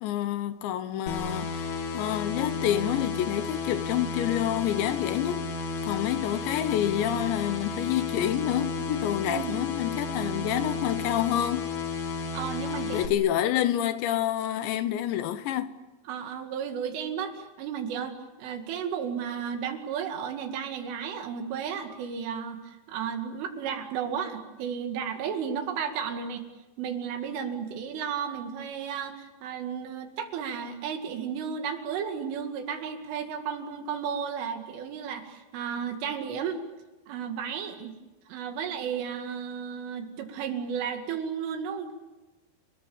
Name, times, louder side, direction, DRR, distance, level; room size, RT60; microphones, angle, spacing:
voice 1, 0.0-5.4 5.9-11.7 12.9-15.8, left 12 dB, 75° left, 3.1 m, -28 dB
sound 1, 1.1-13.1, left 4 dB, 50° left, 2.8 m, -33 dB
voice 2, 10.2-10.6 12.3-13.0 16.1-26.4 26.8-36.7 37.1-38.0 38.3-41.9, right 7 dB, 85° right, 4.8 m, -33 dB
30.0 x 20.5 x 8.8 m
omnidirectional pair, 5.6 m